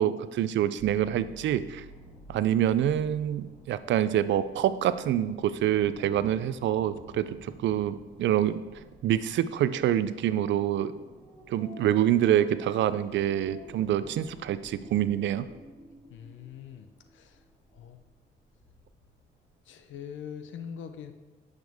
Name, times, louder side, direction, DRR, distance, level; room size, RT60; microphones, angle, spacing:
voice 1, 0.0-1.8 2.3-8.6 9.0-10.9 11.5-15.5, right 11 dB, 70° right, 14 dB, 0.5 m, -26 dB
sound 1, 0.8-19.5 20.0-20.1, left 1 dB, 5° left, 3.1 m, -51 dB
voice 2, 16.1-17.4 17.7-18.0 19.7-21.1, left 8 dB, 75° left, 9 dB, 0.8 m, -43 dB
10.5 x 6.6 x 3.5 m, 1.2 s
cardioid pair, 90°, 20 cm